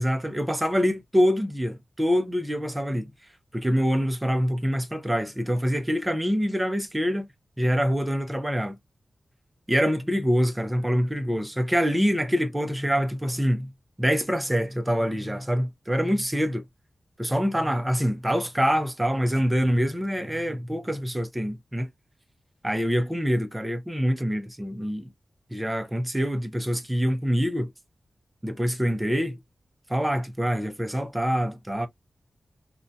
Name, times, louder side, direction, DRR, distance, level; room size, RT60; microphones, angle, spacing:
voice 1, 0.0-3.1 3.5-7.3 7.6-8.8 9.7-13.7 14.0-16.6 17.2-21.9 22.6-25.1 25.5-27.7 28.4-29.4 29.9-31.9, equal, 10° right, 0.5 m, -25 dB
2.7 x 2.2 x 2.5 m
wide cardioid pair, 135°, 0 cm